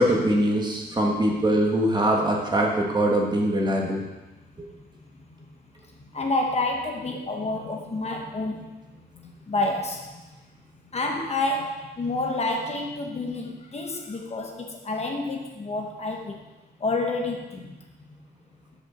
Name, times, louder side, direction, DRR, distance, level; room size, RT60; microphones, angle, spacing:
voice 1, 0.0-4.0, right 1 dB, 25° right, -1 dB, 1.3 m, -22 dB
voice 2, 6.0-8.8 9.1-10.2 10.9-16.4 16.8-17.7, left 2 dB, 35° left, 2 dB, 0.9 m, -29 dB
7.5 x 5.3 x 6.1 m, 1.1 s
wide cardioid pair, 165°, 18 cm